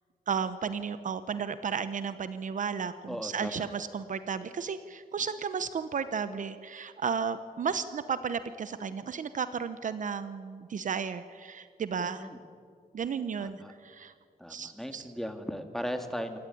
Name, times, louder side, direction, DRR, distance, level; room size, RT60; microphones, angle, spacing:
voice 1, 0.3-12.3 12.9-14.1 14.5-15.1, right 6 dB, 50° right, 12 dB, 0.8 m, -33 dB
voice 2, 3.1-3.7 12.0-12.4 13.4-13.7 14.4-16.4, equal, ahead, 6 dB, 1.9 m, -37 dB
27.0 x 15.0 x 9.9 m, 2.2 s
wide cardioid pair, 145°, 17 cm